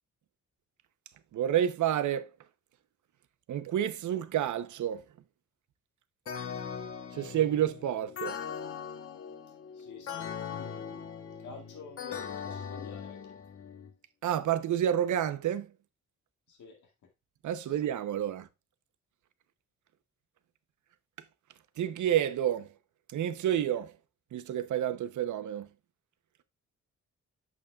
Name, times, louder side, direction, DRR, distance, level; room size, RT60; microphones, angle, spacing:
voice 1, 1.3-2.3 3.5-5.0 7.1-8.4 14.2-15.7 17.4-18.5 21.8-22.7 23.1-23.9 24.3-25.7, right 10 dB, 90° right, 0.8 m, -29 dB
sound 1, 6.3-13.9, left 7 dB, 50° left, 1.0 m, -40 dB
voice 2, 9.7-11.1 11.4-13.4 16.5-16.9 17.6-17.7, left 5 dB, 85° left, 1.9 m, -49 dB
9.0 x 7.2 x 2.3 m
wide cardioid pair, 145°, 29 cm